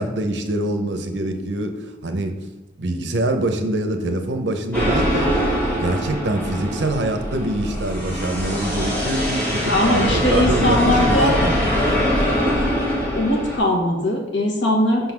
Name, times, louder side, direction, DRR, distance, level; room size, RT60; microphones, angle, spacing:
voice 1, 0.0-2.4 2.8-5.3 5.7-11.6, right 1 dB, 80° right, 7 dB, 0.8 m, -24 dB
sound 1, 4.7-13.6, equal, 10° left, 1.8 m, -22 dB
voice 2, 9.7-11.4 13.1-15.1, left 1 dB, 85° left, 0 dB, 1.4 m, -20 dB
5.6 x 3.9 x 5.9 m, 1.1 s
head